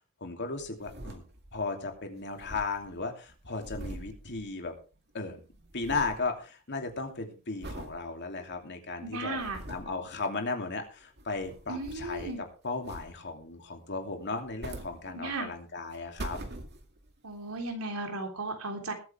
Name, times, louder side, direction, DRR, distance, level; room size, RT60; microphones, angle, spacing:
voice 1, 0.2-1.2 1.5-4.7 5.1-5.4 5.7-9.4 9.7-12.3 12.6-16.4, left 3 dB, 55° left, 4 dB, 2.7 m, -35 dB
sound 1, 0.6-1.7 2.0-2.1 2.2-5.0 5.3-6.3 6.7-7.1 7.6-8.0 8.5-8.6 9.1-10.0 11.0-12.5 12.8-13.4 14.3-15.5 15.9-17.1 17.7-17.8, right 1 dB, 50° right, 2.2 m, -43 dB
voice 2, 9.0-9.6 11.7-12.4 15.1-15.5 17.2-18.9, right 2 dB, 85° right, 3 dB, 3.6 m, -35 dB
20.5 x 9.0 x 3.4 m, 0.34 s
head